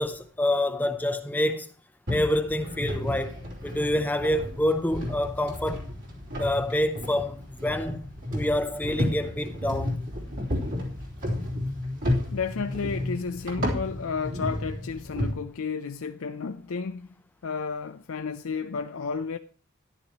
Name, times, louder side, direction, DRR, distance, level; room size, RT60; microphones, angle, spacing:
voice 1, 0.0-1.7 2.1-3.4 3.6-5.8 6.4-8.0 8.3-9.9, left 1 dB, 10° left, 0.6 m, -27 dB
sound 1, 2.1-15.3, left 1 dB, 60° right, 3.5 m, -32 dB
voice 2, 12.3-17.1 17.4-19.4, left 5 dB, 75° left, 0.5 m, -32 dB
13.5 x 11.5 x 3.0 m
head